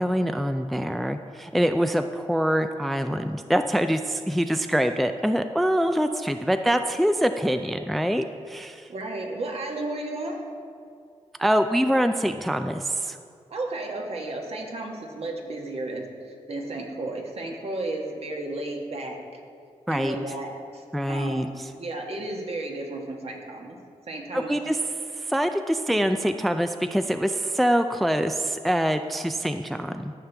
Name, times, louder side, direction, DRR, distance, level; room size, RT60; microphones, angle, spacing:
voice 1, 0.0-8.9 11.4-13.2 19.9-20.2 20.9-21.7 24.3-24.8 25.1-30.1, equal, ahead, 8 dB, 0.3 m, -24 dB
voice 2, 8.9-10.4 13.5-19.2 19.9-21.5 21.8-23.8 24.1-24.6, right 2 dB, 55° right, 1 dB, 1.4 m, -33 dB
13.0 x 5.8 x 3.4 m, 2.3 s
cardioid pair, 65°, 12 cm